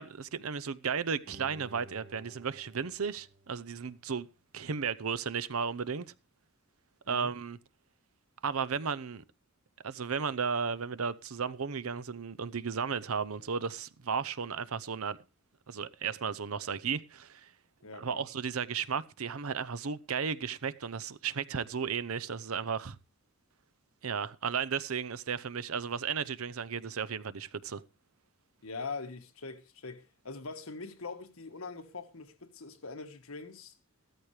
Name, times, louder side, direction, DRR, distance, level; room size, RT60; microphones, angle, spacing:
voice 1, 0.0-4.3 4.5-6.1 7.1-7.6 8.4-9.2 9.8-15.2 15.7-17.5 18.0-23.0 24.0-27.8, right 6 dB, 85° right, 0.7 m, -34 dB
Bowed string instrument, 1.3-4.4 4.8-4.9, right 1 dB, 50° right, 3.1 m, -54 dB
voice 2, 17.8-18.2 28.6-33.7, left 4 dB, 75° left, 1.6 m, -43 dB
15.0 x 13.5 x 3.3 m
head